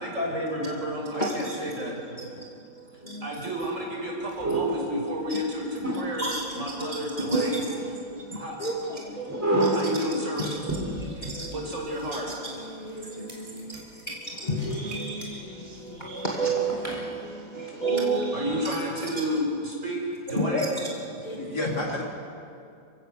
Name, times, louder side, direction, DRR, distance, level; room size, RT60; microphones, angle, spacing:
voice 1, 0.0-2.4 3.2-7.6 8.3-8.6 9.7-10.5 11.0-11.1 11.5-12.3 12.7-12.9 18.3-20.7, equal, 40° right, -3 dB, 5.9 m, -31 dB
voice 2, 1.2-1.6 2.2-2.3 3.0-3.3 6.2-6.4 7.3-9.8 10.4-11.5 12.4-18.6 20.4-20.7 21.2-21.6, right 2 dB, 25° left, -4 dB, 2.5 m, -31 dB
sound 1, 4.3-4.9 5.7-6.5 9.3-10.0 10.4-10.5 10.7-12.2 12.6-12.7 13.3-14.0 14.5-15.3 15.7-15.9 16.7-17.1, right 1 dB, 10° right, 4.1 m, -29 dB
voice 3, 21.1-22.0, left 1 dB, 60° left, -1 dB, 3.6 m, -32 dB
29.0 x 16.5 x 6.8 m, 2.5 s
omnidirectional pair, 2.0 m